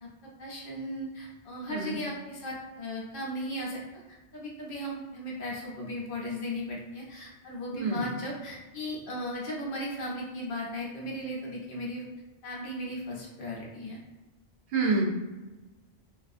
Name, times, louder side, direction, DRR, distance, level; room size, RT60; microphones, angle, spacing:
voice 1, 0.4-3.8 4.1-12.1 12.4-14.0, left 1 dB, 60° left, -3 dB, 0.7 m, -36 dB
voice 2, 7.7-8.1 14.7-15.0, right 3 dB, 85° right, 0 dB, 0.9 m, -27 dB
2.4 x 2.3 x 2.5 m, 1.1 s
omnidirectional pair, 1.1 m